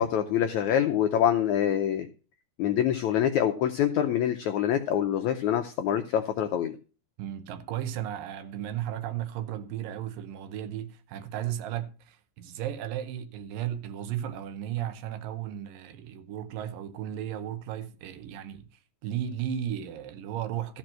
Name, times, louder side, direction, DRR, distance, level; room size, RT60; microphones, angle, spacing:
voice 1, 0.0-2.1 2.6-6.8, left 10 dB, 80° left, 1.7 m, -25 dB
voice 2, 7.2-18.7 19.0-20.8, right 11 dB, 75° right, 2.4 m, -35 dB
13.5 x 5.3 x 7.5 m
omnidirectional pair, 4.2 m